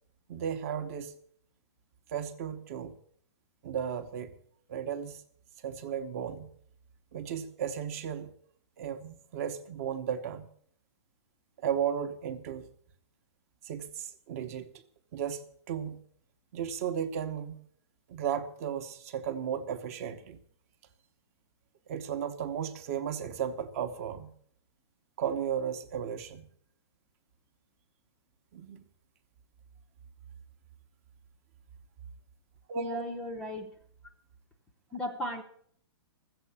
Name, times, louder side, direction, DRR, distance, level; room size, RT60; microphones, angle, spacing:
voice 1, 0.3-1.1 2.1-3.0 3.6-4.3 4.7-5.2 5.6-6.5 7.1-8.3 8.8-10.5 11.6-12.7 13.6-14.8 15.1-16.0 16.5-17.6 18.1-20.4 21.9-24.3 25.2-26.5 28.5-28.8 32.7-33.0, right 8 dB, 30° right, 8 dB, 0.9 m, -35 dB
voice 2, 32.7-33.7 34.9-35.4, left 1 dB, 5° left, 2 dB, 0.6 m, -36 dB
13.5 x 7.9 x 8.4 m, 0.64 s
hypercardioid pair, 170°, 15 cm